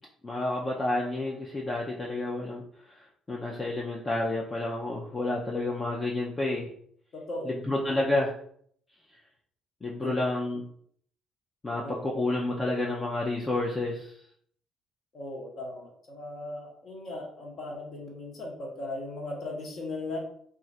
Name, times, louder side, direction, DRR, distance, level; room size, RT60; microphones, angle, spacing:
voice 1, 0.2-6.7 7.4-8.4 9.8-10.6 11.6-14.2, left 2 dB, 20° left, -2 dB, 0.4 m, -30 dB
voice 2, 7.1-7.5 10.0-10.2 11.8-12.0 15.1-20.2, left 2 dB, 50° left, -1 dB, 0.9 m, -37 dB
2.4 x 2.3 x 4.1 m, 0.64 s
cardioid pair, 135°, 0 cm